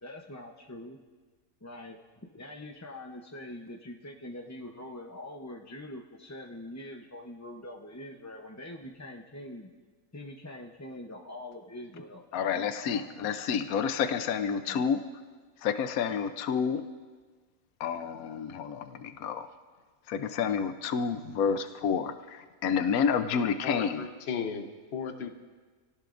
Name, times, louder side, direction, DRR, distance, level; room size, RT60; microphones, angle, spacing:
voice 1, 0.0-1.0 1.6-2.0 2.3-9.7 10.1-13.1 14.6-14.8, left 1 dB, 15° left, 1 dB, 0.6 m, -44 dB
voice 2, 12.3-15.0 15.6-16.8 17.8-19.5 20.1-24.0, left 7 dB, 75° left, 8 dB, 1.2 m, -29 dB
voice 3, 23.3-25.3, left 6 dB, 50° left, 6 dB, 1.2 m, -36 dB
27.5 x 18.0 x 2.6 m, 1.4 s
omnidirectional pair, 1.5 m